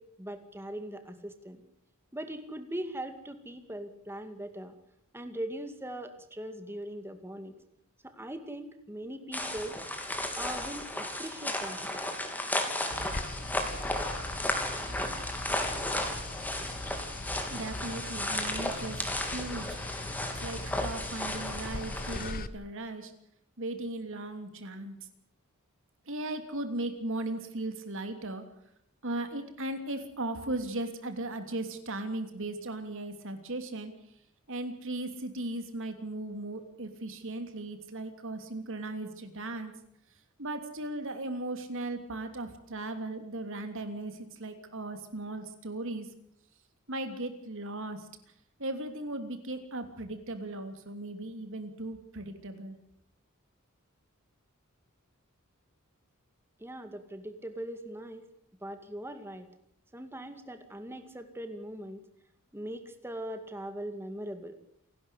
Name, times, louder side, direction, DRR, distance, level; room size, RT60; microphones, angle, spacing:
voice 1, 0.0-1.6 2.1-4.8 5.1-7.5 8.0-9.8 10.4-11.8 56.6-58.3 58.6-59.5 59.9-62.0 62.5-64.6, right 1 dB, 10° right, 8 dB, 2.2 m, -40 dB
sound 1, 9.3-22.3, left 1 dB, 10° left, 3.0 m, -34 dB
sound 2, 12.9-22.5, left 2 dB, 45° left, 1.0 m, -40 dB
voice 2, 17.5-19.7 20.3-23.1 23.6-25.0 26.1-28.4 29.0-33.9 34.5-39.7 40.4-46.1 46.9-48.1 48.6-52.8, right 2 dB, 65° right, 7 dB, 3.1 m, -37 dB
28.0 x 12.0 x 8.3 m, 0.72 s
head